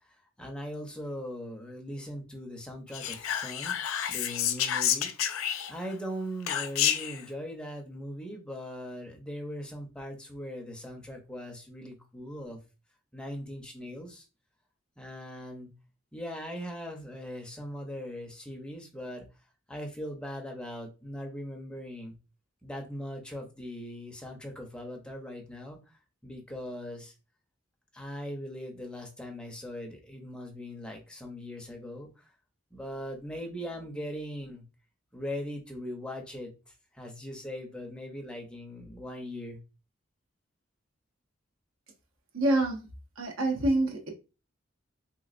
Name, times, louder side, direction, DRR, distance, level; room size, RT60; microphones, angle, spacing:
voice 1, 0.0-5.3 5.7-12.6 13.1-14.3 15.0-15.7 16.1-19.2 19.7-22.1 22.6-27.1 27.9-32.3 32.7-34.6 35.1-39.6, equal, 5° left, 1 dB, 0.6 m, -40 dB
Whispering, 2.9-5.9 6.5-7.2, left 10 dB, 85° left, 0.4 m, -29 dB
voice 2, 42.3-42.8 43.2-44.1, right 1 dB, 85° right, 2 dB, 0.9 m, -26 dB
3.3 x 3.0 x 2.4 m, 0.31 s
head